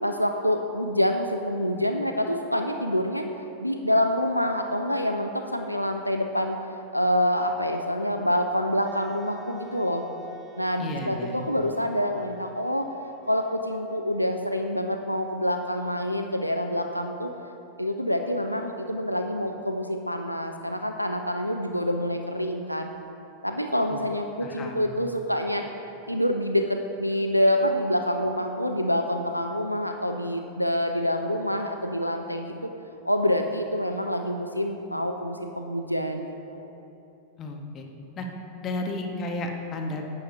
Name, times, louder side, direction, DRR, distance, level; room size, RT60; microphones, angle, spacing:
voice 1, 0.0-3.3 3.6-6.6 6.9-10.0 10.6-12.9 13.3-17.3 17.8-22.9 23.4-25.6 26.1-32.7 33.0-36.3 36.5-36.6, left 1 dB, 90° left, 5 dB, 0.4 m, -26 dB
Wind instrument woodwind instrument, 8.9-14.4, equal, 20° right, 0.7 m, -47 dB
voice 2, 10.8-11.4 23.9-24.0 24.4-24.8 37.4-37.9 38.2-38.3 38.6-40.0, left 2 dB, 30° left, 2 dB, 1.0 m, -33 dB
11.0 x 8.6 x 2.7 m, 2.8 s
figure-of-eight pair, 90°, 0 cm